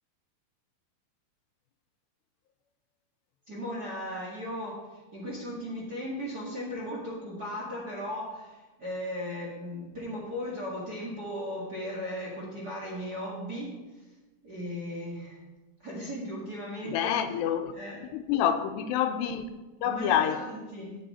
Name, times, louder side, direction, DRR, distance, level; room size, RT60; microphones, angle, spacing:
voice 1, 3.5-4.9 5.1-13.8 14.4-15.4 15.8-17.1 17.7-18.0 19.8-21.0, equal, 40° right, 1.5 m, -37 dB
voice 2, 16.9-17.7 18.1-19.5 19.8-20.4, left 9 dB, 90° left, 2.9 m, -27 dB
13.0 x 8.4 x 4.3 m
omnidirectional pair, 4.7 m